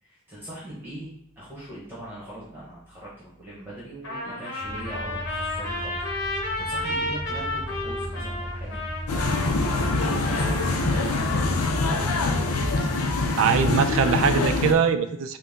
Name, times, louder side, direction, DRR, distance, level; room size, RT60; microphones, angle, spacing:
voice 1, 0.0-11.3, right 1 dB, 10° right, -8 dB, 1.0 m, -40 dB
Trumpet, 4.0-11.1, left 1 dB, 60° left, 1.3 m, -32 dB
sound 1, 4.6-12.8, equal, 35° right, 0.8 m, -36 dB
sound 2, 9.1-14.7, left 3 dB, 80° left, 0.5 m, -24 dB
voice 2, 12.8-15.4, right 6 dB, 65° right, 9 dB, 0.3 m, -23 dB
4.0 x 2.1 x 3.5 m, 0.78 s
head